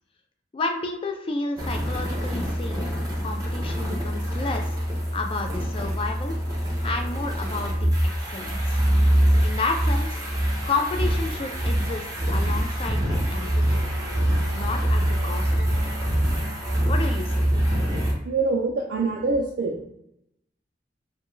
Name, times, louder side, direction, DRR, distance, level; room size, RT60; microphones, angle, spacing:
voice 1, 0.5-2.8 3.2-4.8 5.1-6.4 6.8-7.9 8.3-8.8 9.4-10.2 10.7-13.8 14.5-15.9 16.9-17.5, left 3 dB, 30° left, 4 dB, 0.3 m, -31 dB
sound 1, 1.6-18.1, equal, 20° right, 0.5 m, -24 dB
voice 2, 17.9-19.8, right 3 dB, 80° right, 0 dB, 0.4 m, -26 dB
2.2 x 2.2 x 3.0 m, 0.81 s
head